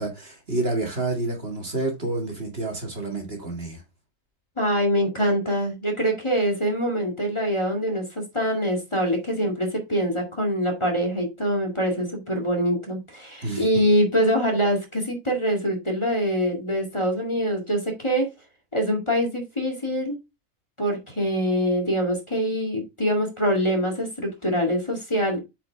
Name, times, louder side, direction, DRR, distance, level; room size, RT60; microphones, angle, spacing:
voice 1, 0.0-3.8 13.4-13.6, right 2 dB, 45° right, 2.1 m, -29 dB
voice 2, 4.6-18.3 18.7-20.2 20.8-25.4, equal, 20° left, 2.0 m, -24 dB
8.2 x 5.1 x 3.4 m
omnidirectional pair, 1.4 m